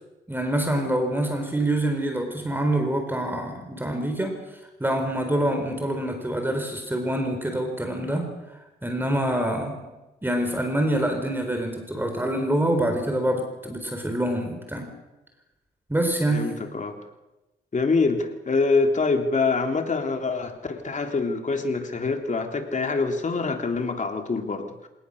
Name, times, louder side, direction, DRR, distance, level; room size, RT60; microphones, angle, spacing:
voice 1, 0.3-4.4 4.8-9.8 10.2-14.9 15.9-16.5, right 1 dB, 10° right, 5 dB, 4.2 m, -26 dB
voice 2, 16.3-17.0 17.7-24.9, left 4 dB, 40° left, 4 dB, 3.3 m, -25 dB
27.0 x 18.5 x 6.6 m, 1.0 s
cardioid pair, 65°, 18 cm